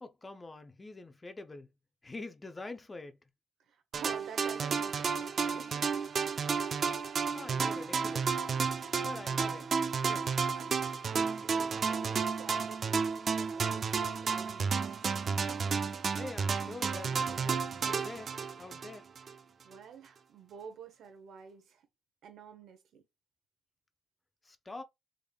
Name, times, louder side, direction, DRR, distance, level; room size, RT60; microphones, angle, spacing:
voice 1, 0.0-1.7 2.0-3.2 7.3-8.4 9.0-9.7 10.1-10.3 16.2-19.1 24.4-24.8, left 2 dB, 25° left, 0.6 m, -45 dB
voice 2, 3.7-6.1 10.5-13.1 13.4-14.9 19.6-21.8 22.2-23.0, right 7 dB, 75° right, 1.1 m, -50 dB
sound 1, 3.9-19.3, right 5 dB, 50° right, 0.5 m, -32 dB
3.7 x 3.3 x 2.3 m
cardioid pair, 90°, 0 cm